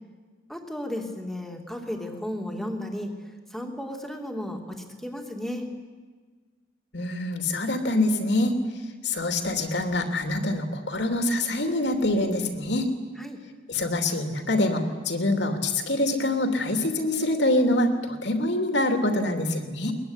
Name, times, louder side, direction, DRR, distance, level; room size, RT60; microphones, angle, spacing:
voice 1, 0.5-3.1 3.5-5.7 13.2-13.4, left 1 dB, ahead, 2 dB, 2.9 m, -34 dB
voice 2, 6.9-8.6 9.0-12.9 13.7-19.9, left 1 dB, 65° left, 5 dB, 3.0 m, -25 dB
22.0 x 21.0 x 10.0 m, 1.4 s
head